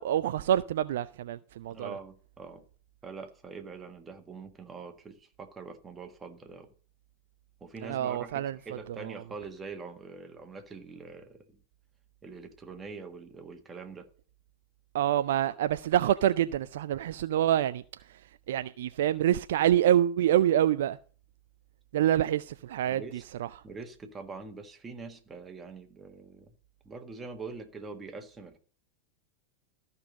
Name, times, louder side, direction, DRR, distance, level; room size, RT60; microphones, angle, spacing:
voice 1, 0.0-2.0 7.8-8.6 9.0-9.2 14.9-17.8 18.1-18.2 18.5-21.0 21.9-23.5, right 11 dB, 55° right, 0.4 m, -26 dB
voice 2, 1.7-2.6 3.0-6.7 7.6-11.6 12.2-14.1 22.8-23.2 23.6-26.5 26.8-28.6, right 4 dB, 15° right, 1.6 m, -44 dB
13.5 x 5.5 x 5.2 m
figure-of-eight pair, 90°, 0 cm